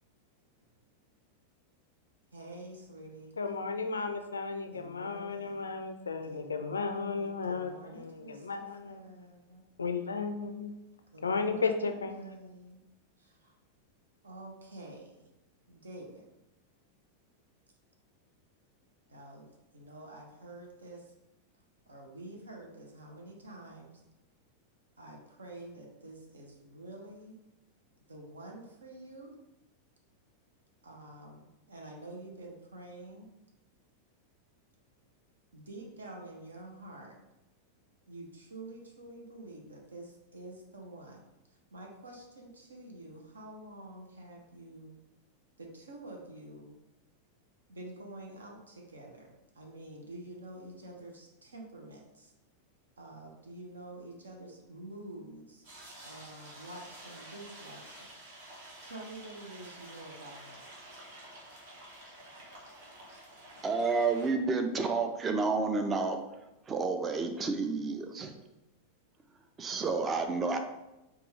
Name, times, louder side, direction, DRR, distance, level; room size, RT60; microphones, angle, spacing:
voice 1, 2.3-3.3 4.7-5.7 6.1-9.7 11.1-12.8 13.2-13.5 14.2-15.2 15.7-16.2 19.1-19.5 19.7-21.1 21.9-24.0 25.0-27.4 28.1-29.3 30.8-33.3 35.5-37.2 38.1-45.0 45.6-46.8 47.7-52.3 53.0-55.7 56.0-57.9 58.8-60.7, right 1 dB, 75° right, 0 dB, 0.7 m, -48 dB
voice 2, 3.4-9.0 9.8-10.7 11.2-12.2, left 4 dB, 75° left, 7 dB, 0.3 m, -34 dB
sound 1, 55.6-64.3, right 1 dB, 55° right, 1.0 m, -50 dB
voice 3, 63.6-66.2 66.7-68.3 69.6-70.6, right 4 dB, 20° right, 6 dB, 0.4 m, -30 dB
4.4 x 2.3 x 3.2 m, 0.95 s
figure-of-eight pair, 90°, 0 cm